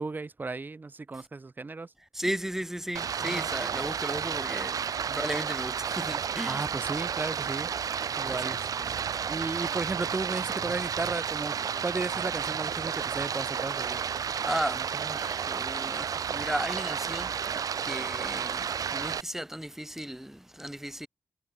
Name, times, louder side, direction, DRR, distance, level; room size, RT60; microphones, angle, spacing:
voice 1, 0.0-1.9 3.2-3.5 5.1-5.2 6.5-7.7 8.2-11.6 11.8-14.0, right 3 dB, 30° right, 2.5 m, -35 dB
voice 2, 2.1-6.6 8.0-8.6 14.4-21.1, right 1 dB, 5° right, 3.8 m, -35 dB
Stream, 2.9-19.2, right 7 dB, 80° right, 5.0 m, -32 dB
wide cardioid pair, 100°, 6 cm